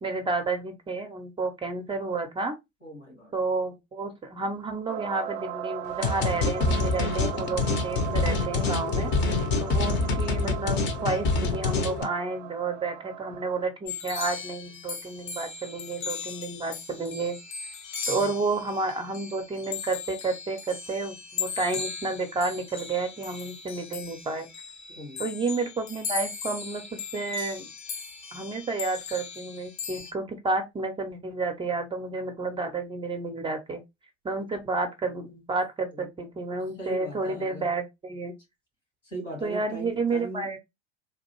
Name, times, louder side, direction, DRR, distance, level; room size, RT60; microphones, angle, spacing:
voice 1, 0.0-2.5 3.3-9.1 9.6-17.4 18.1-24.5 25.2-26.8 27.1-27.7 28.3-33.8 34.2-38.3 39.4-40.6, right 3 dB, 15° right, 0.6 m, -31 dB
voice 2, 2.8-3.3 18.1-18.3 24.9-25.2 35.9-36.1 36.4-37.7 39.0-40.6, right 1 dB, 90° left, 2.3 m, -40 dB
sound 1, 4.9-13.7, right 11 dB, 65° right, 0.5 m, -38 dB
sound 2, 6.0-12.0, left 3 dB, 30° left, 0.7 m, -26 dB
sound 3, 13.9-30.1, left 6 dB, 60° left, 0.8 m, -38 dB
3.8 x 2.5 x 2.9 m
figure-of-eight pair, 80°, 36 cm